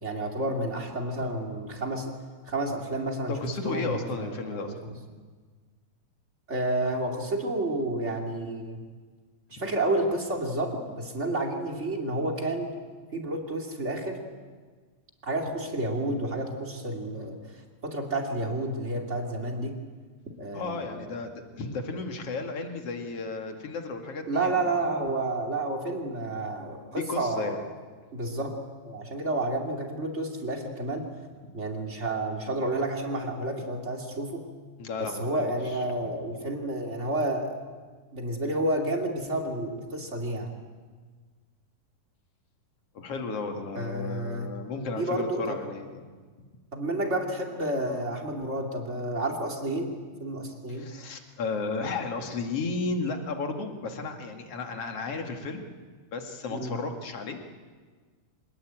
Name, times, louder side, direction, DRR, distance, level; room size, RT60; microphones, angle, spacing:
voice 1, 0.0-2.1 2.5-3.3 3.6-4.9 6.5-8.8 9.5-12.7 13.1-14.2 15.2-17.4 17.8-19.8 20.4-21.1 24.3-27.6 28.1-28.6 28.8-31.0 31.5-34.4 35.0-37.6 38.1-40.5 43.7-44.5 45.0-45.6 46.7-49.9 50.2-50.9 56.5-56.8, right 1 dB, 20° right, 2 dB, 2.7 m, -30 dB
voice 2, 3.3-5.0 9.5-9.7 20.5-24.8 26.9-27.6 34.8-35.8 42.9-46.0 50.7-55.7 56.1-57.4, left 3 dB, 50° left, 4 dB, 2.8 m, -34 dB
26.0 x 20.0 x 8.9 m, 1.5 s
omnidirectional pair, 3.8 m